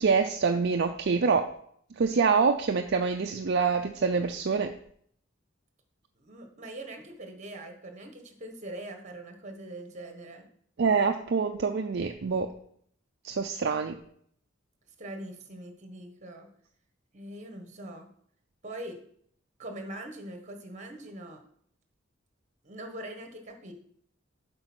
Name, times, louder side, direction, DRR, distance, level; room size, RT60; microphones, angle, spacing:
voice 1, 0.0-1.5 2.0-4.7 10.8-12.5 13.2-14.0, right 5 dB, 55° right, 5 dB, 0.5 m, -25 dB
voice 2, 6.2-10.5 15.0-16.5 17.1-18.1 18.6-19.0 19.6-21.4 22.6-23.7, right 1 dB, 35° right, 5 dB, 1.4 m, -42 dB
7.8 x 5.3 x 6.1 m, 0.65 s
head